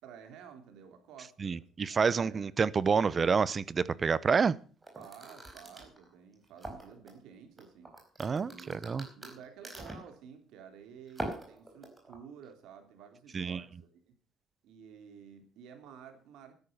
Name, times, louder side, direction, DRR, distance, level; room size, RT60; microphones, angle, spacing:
voice 1, 0.0-2.5 4.9-8.0 8.3-8.8 9.1-14.1 14.6-16.5, right 7 dB, 80° right, 3.4 m, -52 dB
voice 2, 1.4-4.5 8.2-9.1 13.3-13.6, right 5 dB, 30° right, 0.7 m, -28 dB
sound 1, 4.8-7.1 7.6-10.1 11.1-12.2, right 1 dB, 10° right, 5.0 m, -42 dB
13.0 x 10.5 x 6.7 m
cardioid pair, 135°, 0 cm